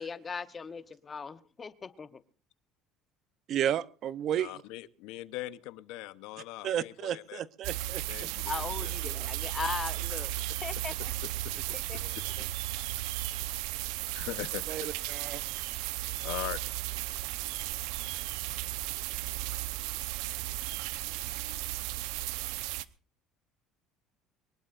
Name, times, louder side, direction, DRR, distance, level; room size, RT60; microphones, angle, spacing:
voice 1, 0.0-2.2 8.5-11.1 11.7-12.5, left 5 dB, 20° left, 13 dB, 0.9 m, -39 dB
voice 2, 3.5-4.6 6.6-8.0 14.7-15.4 15.7-15.9, right 10 dB, 40° right, 17 dB, 0.7 m, -32 dB
voice 3, 4.3-7.4 7.8-8.9 11.2-11.5 13.7-14.9 16.2-16.6, left 17 dB, 70° left, 15 dB, 0.8 m, -41 dB
sound 1, 7.6-22.8, right 16 dB, 80° right, 0.8 m, -35 dB
23.5 x 19.5 x 2.5 m, 0.37 s
cardioid pair, 170°, 0 cm